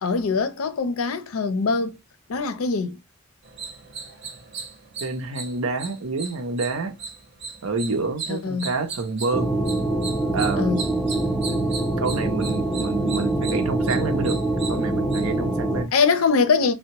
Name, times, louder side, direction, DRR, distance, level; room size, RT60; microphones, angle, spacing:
voice 1, 0.0-2.0 2.3-3.0 8.3-8.7 10.5-10.8 15.9-16.7, left 4 dB, 85° left, 0.5 m, -22 dB
sound 1, 3.4-15.5, right 4 dB, 55° right, 0.7 m, -38 dB
voice 2, 5.0-7.0 7.6-9.5 10.3-10.8 12.0-14.4 14.7-15.9, right 3 dB, 90° right, 0.7 m, -28 dB
sound 2, 9.3-15.8, right 2 dB, ahead, 0.4 m, -24 dB
3.4 x 2.1 x 2.8 m
head